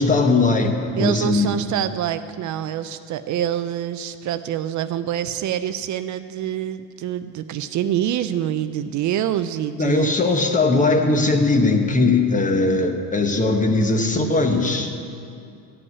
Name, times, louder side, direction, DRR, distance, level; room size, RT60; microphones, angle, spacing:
voice 1, 0.0-1.5 9.8-14.9, left 3 dB, 20° left, 4 dB, 1.1 m, -19 dB
voice 2, 1.0-10.1, right 11 dB, 55° right, 11 dB, 0.5 m, -26 dB
14.0 x 5.5 x 9.5 m, 2.5 s
cardioid pair, 135°, 35 cm